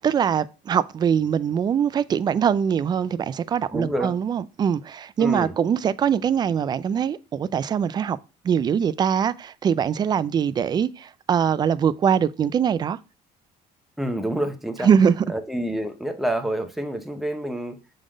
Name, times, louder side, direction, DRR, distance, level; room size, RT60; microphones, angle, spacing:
voice 1, 0.0-8.2 8.4-13.0 14.8-15.2, right 7 dB, 25° right, 0.3 m, -22 dB
voice 2, 3.7-4.2 5.2-5.5 14.0-14.9 15.3-17.8, right 1 dB, ahead, 0.7 m, -28 dB
6.3 x 3.9 x 5.0 m
cardioid pair, 145°, 16 cm